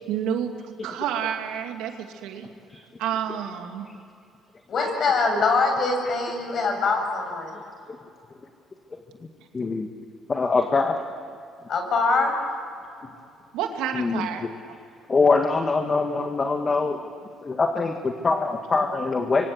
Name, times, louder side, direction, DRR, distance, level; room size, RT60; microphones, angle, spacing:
voice 1, 0.1-2.5 3.0-3.9 13.5-14.5, right 9 dB, 85° right, 4 dB, 2.6 m, -29 dB
voice 2, 4.7-7.6 11.7-12.3, left 3 dB, 55° left, 3 dB, 7.3 m, -23 dB
voice 3, 9.5-9.9 10.3-10.9 13.9-14.3 15.1-17.0 17.4-19.5, left 4 dB, 30° left, 4 dB, 1.9 m, -23 dB
26.5 x 24.5 x 8.0 m, 2.5 s
cardioid pair, 90°, 0 cm